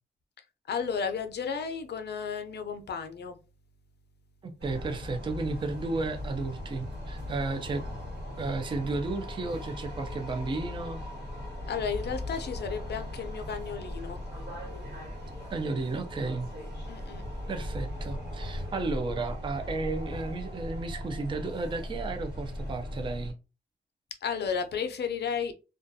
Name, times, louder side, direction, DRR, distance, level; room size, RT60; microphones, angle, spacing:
voice 1, 0.7-3.3 11.7-14.2 16.9-17.2 24.2-25.5, left 6 dB, 70° left, 0.5 m, -33 dB
voice 2, 4.4-7.8 8.4-11.0 15.5-16.5 17.5-23.3, right 3 dB, 30° right, 0.4 m, -33 dB
sound 1, 4.6-23.3, left 1 dB, 80° right, 1.2 m, -38 dB
2.4 x 2.2 x 2.6 m
cardioid pair, 85°, 18 cm